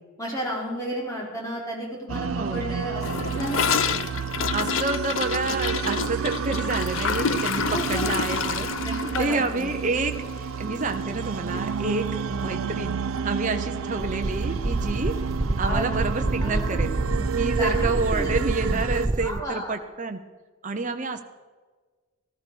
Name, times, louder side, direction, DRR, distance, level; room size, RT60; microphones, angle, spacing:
voice 1, 0.2-3.9 7.7-8.1 8.8-9.6 15.7-15.9 16.4-17.3 17.5-18.3 18.7-18.8 19.2-19.7, right 1 dB, 15° left, -3 dB, 3.8 m, -32 dB
sound 1, 2.1-19.1, right 6 dB, 80° right, 0.5 m, -30 dB
voice 2, 2.4-2.7 4.5-8.7 9.2-15.1 15.6-16.9 17.4-20.2 20.6-21.2, right 3 dB, 35° right, 6 dB, 0.9 m, -29 dB
Gurgling / Toilet flush, 3.0-11.3 11.5-11.7 12.0-12.4 12.7-12.8 13.1-13.2 14.1-14.2, left 6 dB, 70° left, 0.7 m, -29 dB
sound 2, 13.2-19.4, right 2 dB, 15° right, 0.3 m, -28 dB
14.5 x 14.0 x 4.7 m, 1.4 s
head